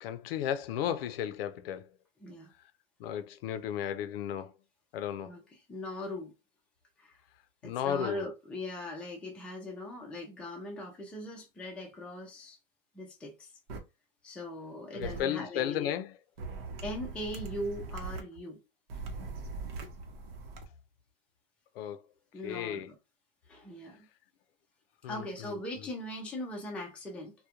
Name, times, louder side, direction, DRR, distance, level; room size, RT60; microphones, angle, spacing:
voice 1, 0.0-1.9 3.0-4.5 4.9-5.3 7.6-8.3 14.9-16.2 21.7-22.1 22.4-22.9 25.0-25.6, left 10 dB, 80° left, 0.5 m, -34 dB
voice 2, 5.7-6.3 7.0-7.1 7.6-12.6 12.9-13.5 14.2-15.9 16.8-18.6 22.3-22.9 23.5-24.1 25.1-27.3, left 1 dB, 5° left, 0.3 m, -40 dB
sound 1, 13.7-13.8 15.0-15.2 16.4-18.2 18.9-20.6, right 3 dB, 85° right, 0.8 m, -40 dB
2.3 x 2.1 x 2.8 m
supercardioid pair, 150°, 29 cm